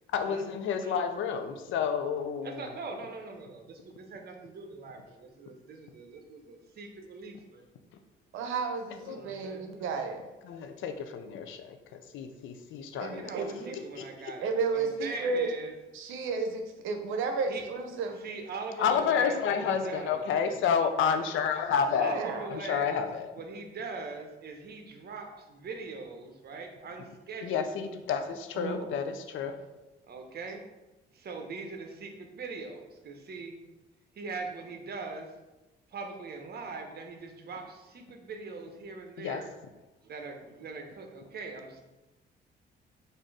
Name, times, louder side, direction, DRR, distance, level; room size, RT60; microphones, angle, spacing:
voice 1, 0.1-2.7 9.1-9.2 10.5-13.3 13.7-14.1 18.8-22.1 22.5-23.3 27.4-29.6 39.2-39.4, left 7 dB, 80° left, 8 dB, 0.5 m, -30 dB
voice 2, 2.4-7.7 9.1-9.7 12.9-15.8 17.5-17.7 18.0-20.6 22.0-23.1 23.3-27.6 30.1-30.6 31.1-33.6 34.1-35.3 35.9-39.5 40.0-41.8, right 4 dB, 55° right, 4 dB, 0.8 m, -41 dB
voice 3, 8.3-10.2 13.0-13.8 14.4-15.5 15.9-18.2 21.9-22.5 28.5-28.9, right 4 dB, 85° right, 5 dB, 0.7 m, -32 dB
4.1 x 2.6 x 4.7 m, 1.1 s
cardioid pair, 90°, 20 cm